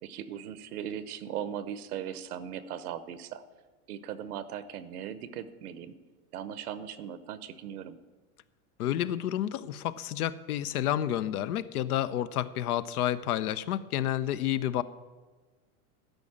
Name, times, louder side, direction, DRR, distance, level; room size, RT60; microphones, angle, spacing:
voice 1, 0.0-3.4 3.9-5.9 6.3-8.0, right 9 dB, 85° right, 14 dB, 0.9 m, -38 dB
voice 2, 8.8-14.8, left 11 dB, 85° left, 15 dB, 0.7 m, -30 dB
13.0 x 5.3 x 8.5 m, 1.3 s
supercardioid pair, 125°, 44 cm